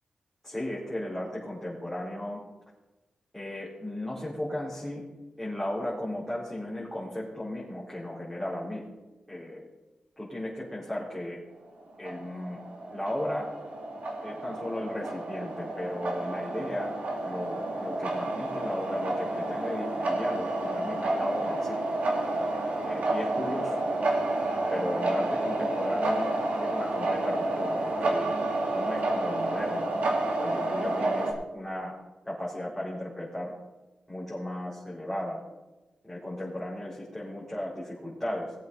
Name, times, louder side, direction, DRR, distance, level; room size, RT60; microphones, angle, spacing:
voice 1, 0.4-2.4 3.3-5.0 5.4-8.8 9.3-9.6 10.2-11.4 12.0-12.6 12.9-13.5 14.2-16.9 17.2-21.8 22.8-23.8 24.7-28.3 28.7-29.9 30.4-31.9 32.2-33.5 34.1-35.4 36.0-38.5, left 1 dB, 5° left, -8 dB, 4.1 m, -35 dB
sound 1, 11.9-31.3, right 2 dB, 75° right, 2.5 m, -30 dB
18.5 x 7.8 x 4.1 m, 1.1 s
wide cardioid pair, 85°, 2 cm